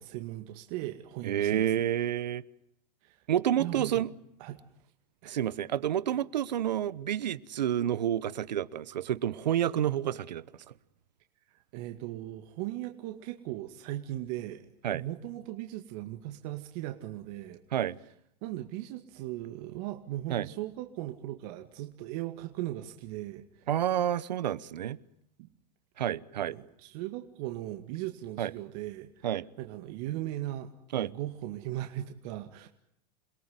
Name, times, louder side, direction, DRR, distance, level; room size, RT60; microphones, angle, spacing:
voice 1, 0.0-1.7 3.0-3.2 3.6-4.0 4.4-4.6 5.2-5.4 11.7-14.7 14.9-17.6 18.4-23.7 25.4-25.5 26.5-29.3 29.6-32.7, right 15 dB, 60° right, 2.1 m, -38 dB
voice 2, 1.2-2.4 3.3-4.1 5.2-10.7 14.8-15.0 17.7-18.0 20.3-20.5 23.7-25.0 26.0-26.6 28.4-28.5 29.2-29.5 30.9-31.1, right 10 dB, 90° right, 1.0 m, -29 dB
28.0 x 18.0 x 9.6 m
hypercardioid pair, 110°, 21 cm